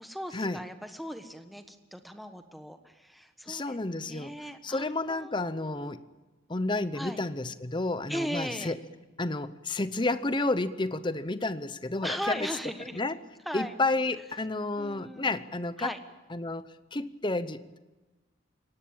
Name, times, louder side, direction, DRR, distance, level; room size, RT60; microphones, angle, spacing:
voice 1, 0.0-3.8 4.1-5.9 6.9-7.2 8.1-8.7 12.0-13.0 13.4-13.7 14.8-15.4 15.8-16.0, equal, ahead, 7 dB, 1.3 m, -38 dB
voice 2, 3.5-4.3 4.6-6.0 6.5-8.8 9.2-12.5 12.9-13.2 13.5-15.9 16.3-16.6 16.9-17.8, left 2 dB, 25° left, 13 dB, 0.8 m, -31 dB
23.0 x 18.0 x 8.8 m, 1.2 s
head